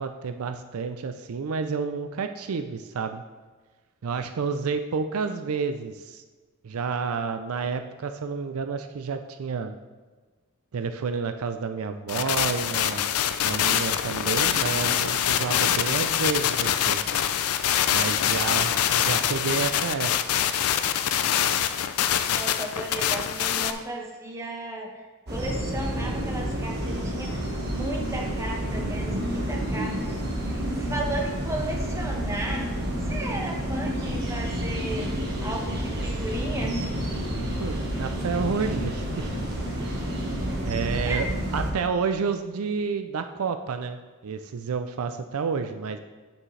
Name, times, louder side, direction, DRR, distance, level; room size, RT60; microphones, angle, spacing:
voice 1, 0.0-3.2 4.0-6.2 6.6-9.7 10.7-13.1 13.4-17.0 17.9-20.4 37.4-39.3 40.6-41.3 41.5-46.0, right 5 dB, 70° right, 8 dB, 0.4 m, -30 dB
sound 1, 12.1-23.7, left 10 dB, 80° left, 0.4 m, -24 dB
voice 2, 22.3-32.7 33.1-35.1 35.4-36.9 40.3-40.7 41.0-41.3, right 1 dB, 15° right, -1 dB, 1.1 m, -35 dB
sound 2, 25.3-41.7, equal, 50° right, 1.5 m, -29 dB
8.7 x 7.2 x 3.2 m, 1.4 s
head